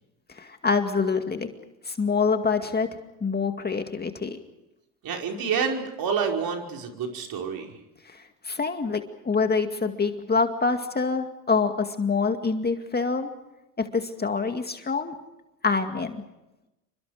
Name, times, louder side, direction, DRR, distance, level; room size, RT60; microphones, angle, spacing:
voice 1, 0.3-1.5 1.9-2.9 3.2-4.4 8.0-13.3 13.8-15.1 15.6-16.2, left 4 dB, 20° left, 6 dB, 2.2 m, -26 dB
voice 2, 5.0-7.8, right 6 dB, 50° right, 2 dB, 5.3 m, -28 dB
29.0 x 24.5 x 5.0 m, 0.93 s
hypercardioid pair, 80°, 46 cm